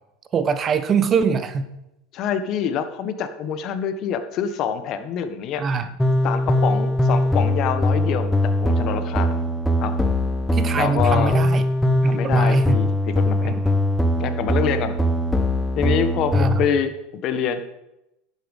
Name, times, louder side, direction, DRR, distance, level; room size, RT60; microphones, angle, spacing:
voice 1, 0.3-1.7 5.6-5.9 10.5-11.6 12.0-12.8 13.4-13.8 16.3-16.6, right 5 dB, 35° right, 11 dB, 1.1 m, -23 dB
voice 2, 2.1-5.6 6.2-9.4 9.8-9.9 10.7-11.4 12.0-13.5 14.2-14.9 15.7-17.7, left 8 dB, 50° left, 9 dB, 1.4 m, -26 dB
sound 1, 6.0-16.7, left 1 dB, 5° left, 1.2 m, -21 dB
11.5 x 8.7 x 5.4 m, 0.89 s
hypercardioid pair, 95°, 0 cm